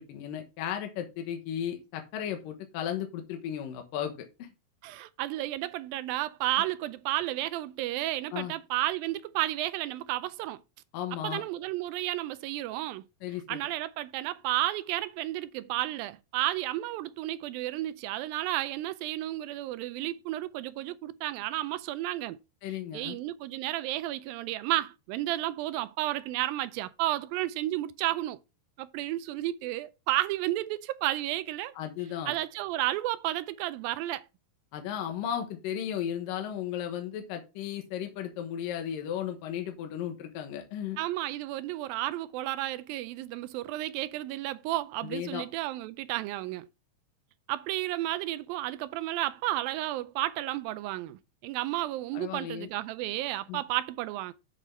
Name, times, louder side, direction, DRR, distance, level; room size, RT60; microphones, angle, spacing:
voice 1, 0.0-4.1 4.4-4.5 8.3-8.5 10.9-11.4 13.2-13.7 22.6-23.2 31.8-32.3 34.7-41.0 45.0-45.4 52.1-52.7 53.5-53.6, left 10 dB, 70° left, 2.7 m, -35 dB
voice 2, 4.8-10.6 11.2-13.0 13.5-22.4 22.9-28.4 28.8-31.8 32.3-34.3 41.0-46.7 47.5-54.3, right 15 dB, 80° right, 2.2 m, -32 dB
8.2 x 7.1 x 3.4 m
omnidirectional pair, 4.3 m